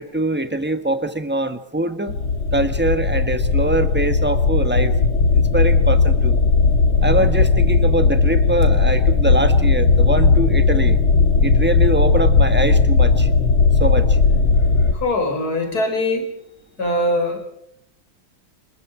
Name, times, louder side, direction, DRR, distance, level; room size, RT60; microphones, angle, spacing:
voice 1, 0.0-2.1 2.5-4.9 5.3-6.4 7.0-11.0 11.4-13.3 13.8-14.2, right 2 dB, 5° right, 9 dB, 0.9 m, -23 dB
sound 1, 2.1-14.9, left 4 dB, 75° left, 3.1 m, -16 dB
voice 2, 7.0-7.3 14.9-16.3 16.8-17.4, left 1 dB, 45° left, 5 dB, 5.0 m, -22 dB
27.0 x 21.5 x 4.9 m, 0.74 s
omnidirectional pair, 2.3 m